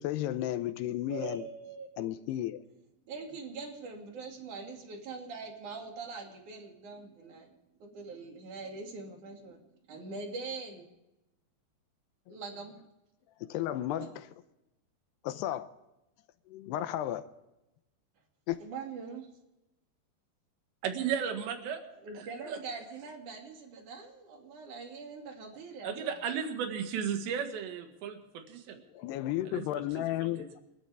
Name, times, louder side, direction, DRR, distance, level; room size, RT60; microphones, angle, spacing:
voice 1, 0.0-1.5 2.0-2.6 12.3-12.4 13.4-14.1 15.2-15.7 16.5-17.3 18.5-18.6 28.9-30.6, left 13 dB, 80° left, 2.7 m, -33 dB
voice 2, 1.1-2.1 3.1-7.5 7.8-9.6 9.9-10.9 12.3-12.8 14.0-14.1 18.6-19.3 22.0-26.1, right 4 dB, 50° right, 3.6 m, -43 dB
voice 3, 20.8-21.8 22.2-22.6 25.8-28.8 29.5-30.5, right 7 dB, 90° right, 4.0 m, -35 dB
29.5 x 12.5 x 3.5 m
omnidirectional pair, 4.9 m